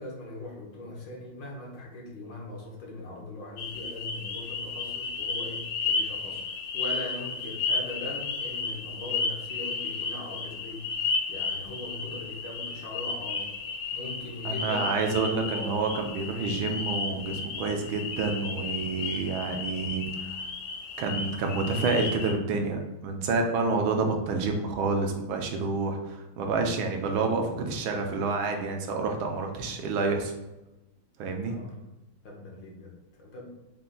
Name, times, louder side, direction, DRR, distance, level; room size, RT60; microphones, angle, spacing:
voice 1, 0.0-10.9 11.3-13.5 13.9-15.8 19.3-19.8 31.4-31.7 32.2-33.5, left 2 dB, 65° left, -1 dB, 1.6 m, -40 dB
sound 1, 3.6-22.3, left 4 dB, 80° left, 1.5 m, -33 dB
voice 2, 14.4-20.1 21.0-30.3 31.2-31.6, right 4 dB, 80° right, 3 dB, 1.4 m, -28 dB
5.5 x 2.2 x 3.8 m, 0.97 s
omnidirectional pair, 2.3 m